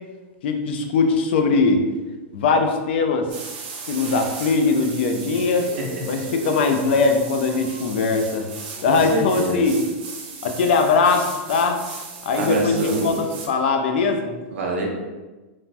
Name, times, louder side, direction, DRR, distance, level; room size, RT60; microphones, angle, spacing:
voice 1, 0.4-1.8 2.3-3.3 3.9-5.7 6.0-8.5 8.8-9.8 10.4-11.8 12.2-14.4, left 4 dB, 55° left, 5 dB, 0.4 m, -20 dB
sound 1, 3.3-13.5, right 5 dB, 40° right, 0.5 m, -36 dB
voice 2, 8.9-9.6 12.4-13.1 14.5-14.9, right 2 dB, 80° right, 0 dB, 0.7 m, -25 dB
3.3 x 2.1 x 2.5 m, 1.2 s
supercardioid pair, 175°, 7 cm